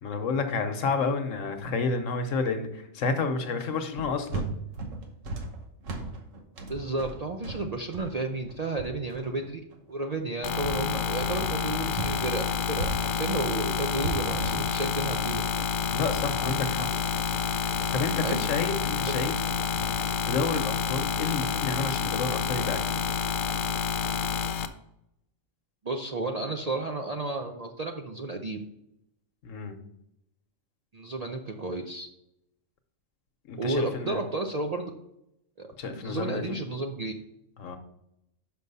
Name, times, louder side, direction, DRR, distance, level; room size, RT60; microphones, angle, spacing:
voice 1, 0.0-4.5 15.9-16.9 17.9-19.3 20.3-23.0 29.4-29.8 33.5-34.2 35.8-36.6 37.6-37.8, left 4 dB, 80° left, 7 dB, 1.3 m, -30 dB
sound 1, 3.9-12.2 12.5-21.2, right 3 dB, 80° right, 1.4 m, -38 dB
voice 2, 6.7-9.6 9.9-15.5 18.2-18.5 25.8-28.6 30.9-32.1 33.6-34.9 35.6-37.1, right 2 dB, 50° right, 3 dB, 0.5 m, -32 dB
sound 2, 10.4-24.7, left 7 dB, 55° left, 0.6 m, -29 dB
6.1 x 5.3 x 5.4 m, 0.81 s
omnidirectional pair, 1.3 m